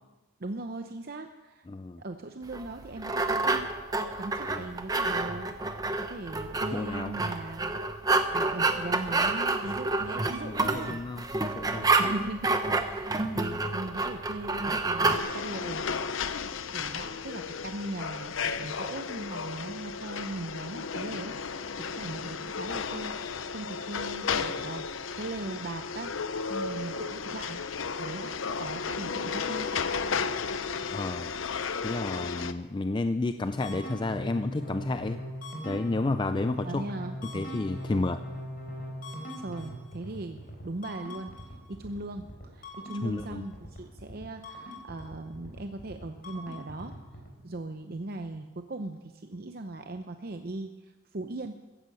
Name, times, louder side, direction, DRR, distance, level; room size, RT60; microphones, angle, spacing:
voice 1, 0.4-1.7 2.0-3.7 4.2-5.6 6.0-7.8 8.3-11.0 12.0-15.9 16.7-26.1 26.5-27.6 28.0-29.7 36.6-37.2 39.4-41.4 41.7-46.9 47.4-51.6, right 2 dB, 50° right, 6 dB, 0.7 m, -39 dB
voice 2, 1.7-2.0 4.5-4.6 6.7-7.1 10.4-11.9 13.2-13.3 30.9-31.3 31.8-35.2 35.6-36.8 37.2-38.2 43.0-43.4, left 2 dB, 25° left, 10 dB, 0.4 m, -31 dB
sound 1, 2.5-15.2, right 3 dB, 20° right, 0.9 m, -28 dB
sound 2, 15.0-32.5, left 5 dB, 80° left, 0.7 m, -34 dB
sound 3, 33.4-47.3, equal, 45° left, 4.2 m, -40 dB
15.0 x 10.0 x 7.7 m, 1.1 s
head